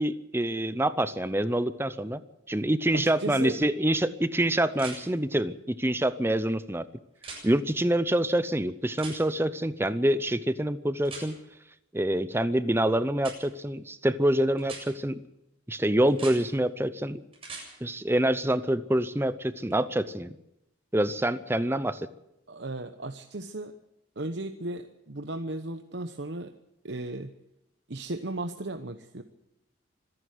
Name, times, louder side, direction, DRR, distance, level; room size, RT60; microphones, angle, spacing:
voice 1, 0.0-2.2 2.5-6.9 7.4-11.3 11.9-15.2 15.7-17.2 17.8-20.3 20.9-22.1, right 1 dB, 10° right, 14 dB, 0.7 m, -26 dB
voice 2, 2.9-3.6 22.5-23.7 24.2-26.5 26.8-27.3 27.9-29.2, right 2 dB, 60° right, 7 dB, 1.0 m, -35 dB
sound 1, 3.2-3.3 4.7-5.0 7.2-7.4 9.0-9.2 11.0-11.3 13.2-13.4 14.6-14.8 16.1-16.4 17.3-17.7 19.7-19.8, right 4 dB, 30° right, 7.7 m, -40 dB
25.5 x 11.0 x 9.4 m, 0.86 s
head